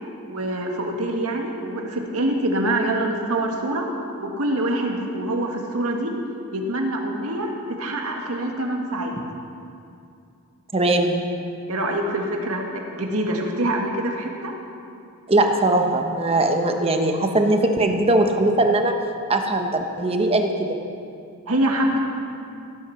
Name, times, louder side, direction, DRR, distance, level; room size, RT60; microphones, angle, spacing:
voice 1, 0.3-3.9 4.2-6.1 6.5-7.5 7.8-9.1 11.7-14.5 21.5-22.0, right 1 dB, 80° right, 1 dB, 1.8 m, -25 dB
voice 2, 10.7-11.2 15.3-18.9 19.3-20.5, right 2 dB, 25° right, 4 dB, 1.0 m, -20 dB
17.0 x 8.9 x 5.9 m, 2.5 s
head